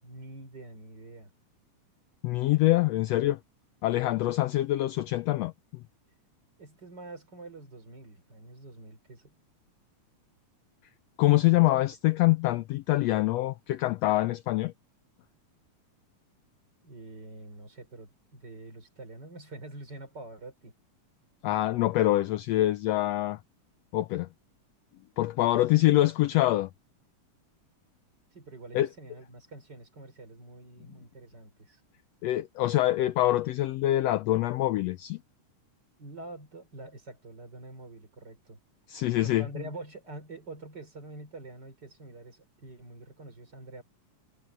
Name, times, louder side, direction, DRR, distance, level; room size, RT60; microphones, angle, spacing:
voice 1, 0.0-1.3 6.6-9.3 11.4-11.7 16.8-20.7 25.7-26.0 28.3-31.8 36.0-38.6 39.2-43.8, right 2 dB, 30° right, 4.6 m, -46 dB
voice 2, 2.2-3.4 3.8-5.5 11.2-14.7 21.4-23.4 23.9-24.3 25.2-26.7 28.7-28.9 32.2-35.2 38.9-39.5, left 16 dB, 85° left, 1.4 m, -25 dB
omnidirectional pair, 3.6 m